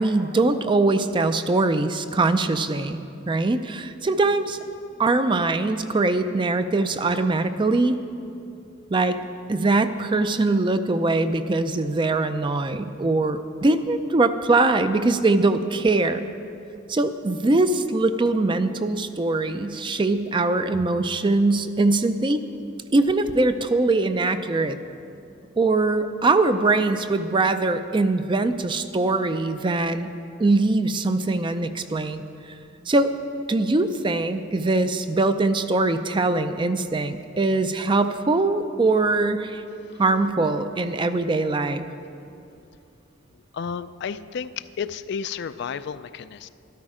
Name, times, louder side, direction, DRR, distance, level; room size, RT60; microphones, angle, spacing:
voice 1, 0.0-3.0 3.3-4.6 5.0-8.0 8.9-9.2 9.5-16.3 16.9-22.4 22.9-24.8 25.6-30.1 30.4-32.2 32.9-33.1 33.5-39.6 40.0-41.9, right 2 dB, 25° right, 10 dB, 0.4 m, -22 dB
voice 2, 43.5-46.5, left 6 dB, 60° left, 13 dB, 0.4 m, -32 dB
13.0 x 12.5 x 4.9 m, 2.6 s
head